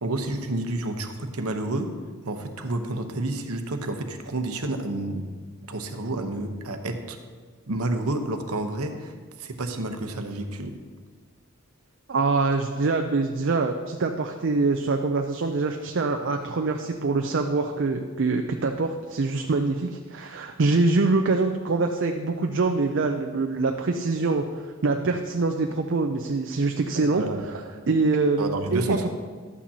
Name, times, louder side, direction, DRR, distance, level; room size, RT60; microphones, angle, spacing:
voice 1, 0.0-2.0 2.2-5.3 5.7-7.2 7.7-10.8 26.9-27.8 28.4-29.1, right 2 dB, 85° right, 6 dB, 0.9 m, -30 dB
voice 2, 12.1-27.6 27.9-29.1, right 3 dB, 55° right, 4 dB, 0.4 m, -24 dB
12.0 x 8.6 x 2.8 m, 1.5 s
head